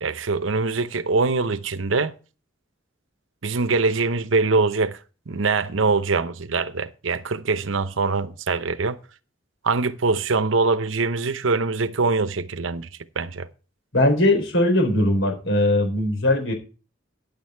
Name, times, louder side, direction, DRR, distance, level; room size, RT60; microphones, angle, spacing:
voice 1, 0.0-2.2 3.4-5.0 5.3-9.0 9.6-12.9 13.2-13.5, right 4 dB, 90° right, 0.8 m, -23 dB
voice 2, 13.9-16.5, left 1 dB, 85° left, 3.9 m, -20 dB
10.0 x 8.6 x 4.4 m
head